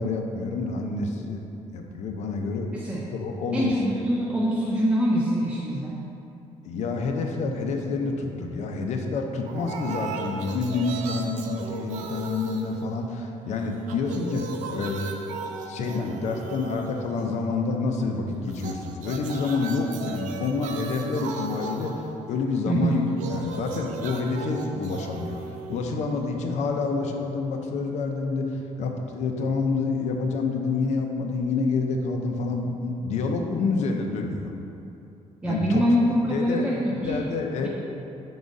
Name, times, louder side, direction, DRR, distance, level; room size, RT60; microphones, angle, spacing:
voice 1, 0.0-1.4 1.7-2.8 3.1-3.7 6.6-15.2 15.7-25.4 25.7-34.5 35.4-35.8 36.3-36.7 37.0-37.7, left 4 dB, 65° left, 3 dB, 0.6 m, -28 dB
voice 2, 2.7-3.0 3.5-6.0 22.7-23.0 35.4-37.2 37.6-37.7, equal, 10° right, -5 dB, 0.5 m, -24 dB
sound 1, 9.5-13.4 13.7-17.5 18.5-26.5, right 5 dB, 80° right, 0.5 m, -37 dB
4.8 x 4.0 x 5.1 m, 2.8 s
cardioid pair, 125°, 13 cm